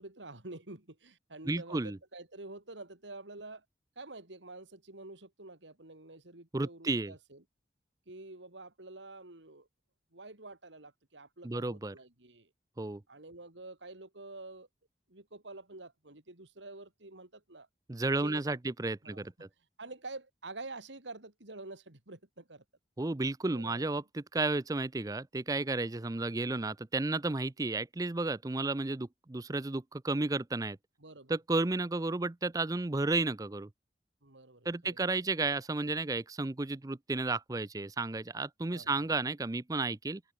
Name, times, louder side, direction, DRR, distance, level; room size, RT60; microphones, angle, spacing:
voice 1, 0.0-3.6 3.9-7.4 8.1-9.7 10.1-12.5 13.1-14.7 15.1-17.7 18.2-18.4 19.0-19.3 19.8-22.6 23.5-24.0 31.0-31.6 34.2-35.0 38.7-39.2, right 2 dB, 90° right, 3.2 m, -48 dB
voice 2, 1.5-2.0 6.5-7.1 11.4-11.9 12.8-13.0 17.9-19.5 23.0-30.8 31.3-33.7 34.7-40.2, right 3 dB, 20° right, 0.5 m, -32 dB
head